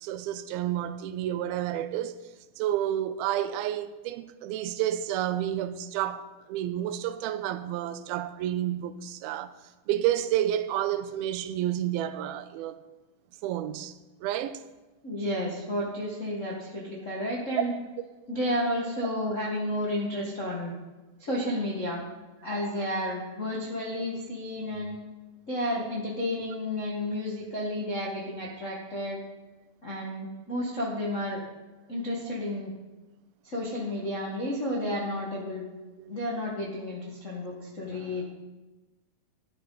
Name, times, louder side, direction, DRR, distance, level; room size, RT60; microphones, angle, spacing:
voice 1, 0.0-2.3 2.6-9.6 9.9-12.8 13.4-13.9 14.2-14.6 17.6-17.7 36.0-36.2, right 12 dB, 90° right, 2.5 m, -30 dB
voice 2, 15.0-17.7 18.3-20.7 21.2-22.0 22.4-25.0 25.5-29.2 29.8-31.4 31.9-32.7 33.4-35.6 36.1-38.2, left 1 dB, 70° left, 0.7 m, -31 dB
13.5 x 10.0 x 4.0 m
omnidirectional pair, 4.2 m